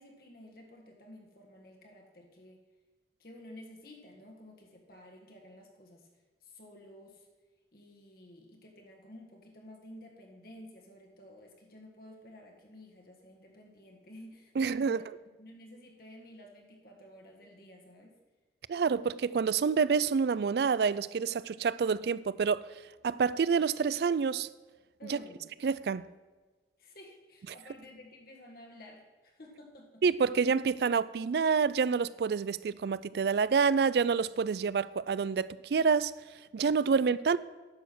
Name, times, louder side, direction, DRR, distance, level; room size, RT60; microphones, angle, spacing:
voice 1, 0.0-2.6 3.2-6.1 6.4-7.3 7.7-15.1 15.4-18.2 25.0-25.5 26.8-30.0 36.9-37.1, left 1 dB, 55° left, 1.7 m, -52 dB
voice 2, 14.6-15.0 18.7-22.7 23.0-24.5 25.1-25.2 25.6-26.1 30.0-36.1 36.5-37.4, right 5 dB, 65° right, 0.3 m, -28 dB
10.5 x 7.0 x 6.1 m
head